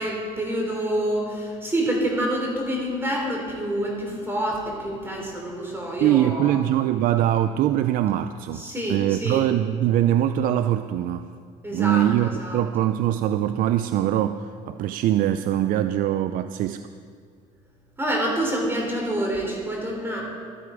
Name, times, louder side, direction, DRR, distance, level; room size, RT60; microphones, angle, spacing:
voice 1, 0.0-6.6 8.5-9.4 11.6-12.6 18.0-20.2, right 1 dB, 15° right, -1 dB, 3.3 m, -27 dB
voice 2, 6.0-8.6 8.9-11.3 11.7-16.8, right 12 dB, 65° right, 10 dB, 0.5 m, -22 dB
12.5 x 12.5 x 5.0 m, 2.3 s
cardioid pair, 100°, 15 cm